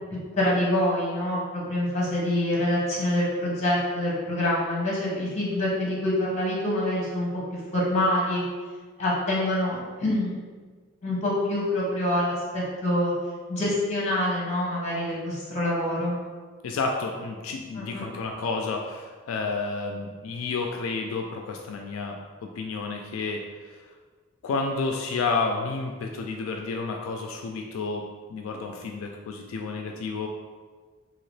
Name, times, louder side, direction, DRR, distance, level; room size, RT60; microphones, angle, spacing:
voice 1, 0.3-8.4 9.0-10.3 11.0-13.1 13.5-16.1 17.7-18.0, left 1 dB, 35° left, -5 dB, 1.0 m, -26 dB
voice 2, 16.6-23.8 24.4-30.3, left 4 dB, 85° left, 2 dB, 0.3 m, -31 dB
2.9 x 2.8 x 3.1 m, 1.5 s
head